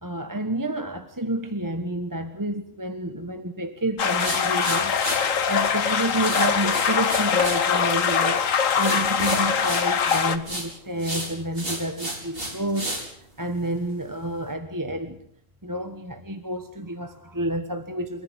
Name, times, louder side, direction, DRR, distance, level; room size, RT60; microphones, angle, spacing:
voice 1, 0.0-8.5 8.8-12.9 13.4-15.2 15.6-18.2, right 1 dB, 15° right, 8 dB, 1.3 m, -29 dB
sound 1, 4.0-10.4, left 7 dB, 80° left, 1.6 m, -23 dB
sound 2, 4.2-5.2 6.1-7.6 7.9-8.4 8.8-10.7 11.0-13.1, right 1 dB, 45° right, 5.8 m, -31 dB
27.5 x 14.0 x 8.2 m, 0.67 s
omnidirectional pair, 1.3 m